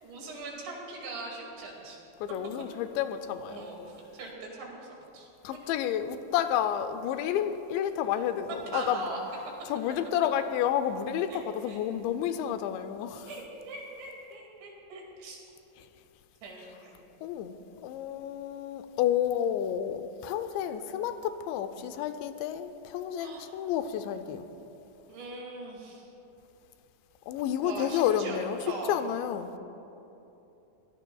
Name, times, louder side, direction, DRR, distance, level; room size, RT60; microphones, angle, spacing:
voice 1, 0.0-2.0 2.8-2.9 3.5-3.8 4.1-5.3 8.5-9.2 11.3-11.4 11.7-11.8 13.3-15.4 16.4-17.0 23.2-23.5 25.1-26.1 27.6-29.1, right 3 dB, 75° right, 4.5 m, -41 dB
voice 2, 2.2-3.7 5.4-9.1 9.7-13.3 17.2-24.5 27.3-29.5, left 10 dB, 80° left, 2.8 m, -30 dB
23.0 x 17.5 x 2.3 m
omnidirectional pair, 5.3 m